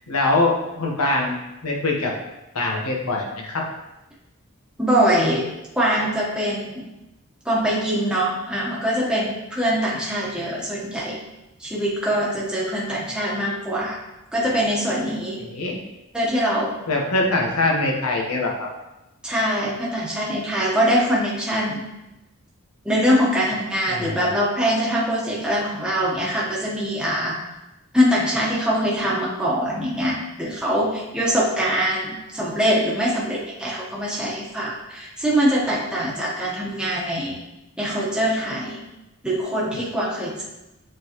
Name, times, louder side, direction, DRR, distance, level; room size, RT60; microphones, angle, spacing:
voice 1, 0.1-1.3 1.6-2.1 2.5-3.6 15.5-15.8 16.9-18.5 23.9-24.3, left 2 dB, 85° left, -1 dB, 1.2 m, -23 dB
voice 2, 4.8-5.5 5.7-6.9 7.4-11.2 11.6-14.0 14.3-15.4 16.1-16.8 19.2-21.8 22.8-27.4 27.9-37.4 37.8-38.8 39.2-40.4, equal, 5° right, -6 dB, 1.1 m, -23 dB
8.1 x 3.9 x 3.0 m, 0.97 s
head